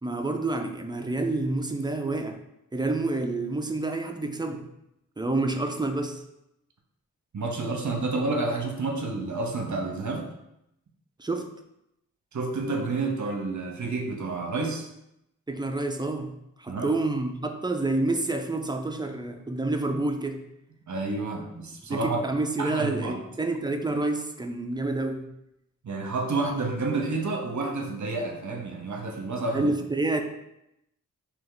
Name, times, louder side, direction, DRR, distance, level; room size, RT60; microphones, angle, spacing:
voice 1, 0.0-2.4 2.7-4.7 5.2-6.2 11.2-11.5 15.5-16.3 16.6-20.4 21.9-25.3 29.5-30.2, right 2 dB, 15° right, 5 dB, 0.4 m, -28 dB
voice 2, 7.3-10.3 12.3-14.9 16.7-16.9 20.9-22.2 22.6-23.2 25.8-29.7, right 3 dB, 60° right, 2 dB, 0.8 m, -29 dB
3.4 x 2.9 x 3.8 m, 0.83 s
wide cardioid pair, 80°, 33 cm